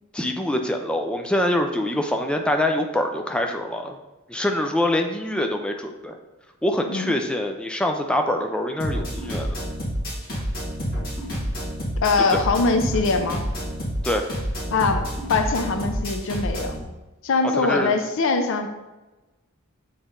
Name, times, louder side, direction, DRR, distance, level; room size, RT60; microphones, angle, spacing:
voice 1, 0.1-4.0 4.3-6.2 6.6-9.5 14.0-14.3 17.5-17.9, left 1 dB, 5° left, 4 dB, 0.4 m, -24 dB
sound 1, 8.8-16.8, equal, 45° left, 2.1 m, -29 dB
voice 2, 12.0-13.4 14.7-16.8 17.2-18.7, left 3 dB, 65° left, 6 dB, 0.5 m, -22 dB
7.0 x 4.1 x 3.7 m, 1.1 s
head